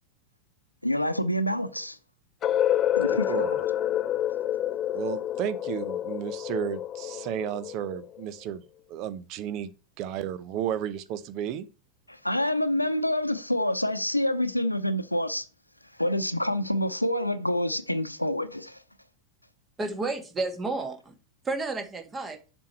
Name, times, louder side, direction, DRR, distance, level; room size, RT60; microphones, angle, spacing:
voice 1, 0.8-2.0 3.0-3.4 12.1-15.5 16.0-18.8, left 1 dB, 85° left, 0.8 m, -27 dB
sound 1, 2.4-8.3, left 11 dB, 30° left, 0.4 m, -28 dB
voice 2, 3.1-3.6 4.9-8.6 8.9-9.7 10.0-11.7, right 10 dB, 40° right, 0.8 m, -33 dB
voice 3, 19.8-21.1 21.4-22.4, right 3 dB, 15° right, 1.7 m, -31 dB
7.3 x 6.2 x 4.4 m
figure-of-eight pair, 90°, 0 cm